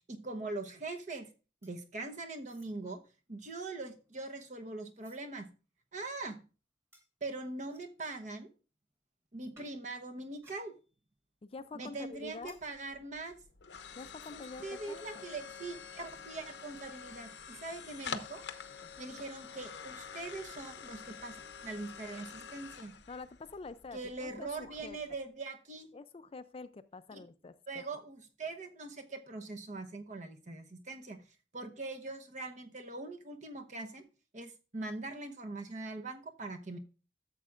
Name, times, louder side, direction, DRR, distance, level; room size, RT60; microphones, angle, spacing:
voice 1, 0.1-1.3 1.6-3.0 3.3-5.5 5.9-6.4 7.2-8.5 9.3-10.7 11.7-13.4 14.3-18.4 19.0-23.0 23.9-25.9 27.1-27.2 27.7-31.2 31.5-34.0 34.3-36.8, right 3 dB, 45° right, 4 dB, 0.9 m, -42 dB
sound 1, 1.6-2.0 2.4-2.8 3.5-5.3 5.8-5.9 6.9-7.1 7.7-8.0 9.5-9.8 10.3-11.2 11.5-14.6 14.8-14.9 15.1-15.4 16.1-16.2, equal, 15° right, 2.0 m, -64 dB
voice 2, 11.4-12.6 13.9-15.3 18.8-18.9 23.1-25.0 25.9-27.8, left 3 dB, 35° left, 12 dB, 0.4 m, -47 dB
sound 2, 12.2-25.2, left 6 dB, 75° left, 0.7 m, -47 dB
13.0 x 7.3 x 2.5 m, 0.33 s
head